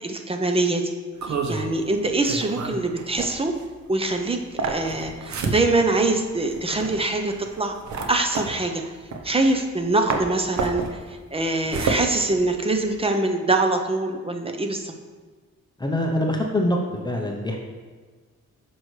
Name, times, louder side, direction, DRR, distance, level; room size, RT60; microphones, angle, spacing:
voice 1, 0.0-0.9 1.3-3.5 3.9-7.7 8.1-8.8 9.2-11.0 11.3-14.9, right 2 dB, 20° right, 4 dB, 0.7 m, -24 dB
sound 1, 1.2-9.8 10.1-13.0, right 4 dB, 70° right, 0.9 m, -30 dB
voice 2, 15.8-16.8 17.0-17.6, left 1 dB, 15° left, 0 dB, 0.8 m, -24 dB
9.5 x 6.2 x 3.2 m, 1.4 s
wide cardioid pair, 130°, 29 cm